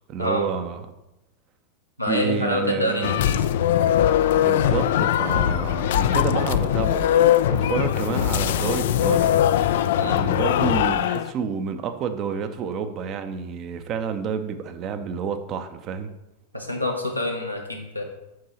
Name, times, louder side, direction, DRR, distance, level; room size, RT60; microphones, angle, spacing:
voice 1, 0.1-0.8 2.1-3.2 4.3-7.0 7.5-9.3 9.9-16.1, right 6 dB, 35° right, 8 dB, 0.7 m, -29 dB
voice 2, 2.0-3.4 10.0-10.3 16.5-18.0, left 1 dB, 90° left, 1 dB, 1.1 m, -26 dB
sound 1, 3.0-11.3, left 11 dB, 55° left, 0.3 m, -21 dB
7.6 x 5.5 x 4.2 m, 0.93 s
figure-of-eight pair, 90°, 0 cm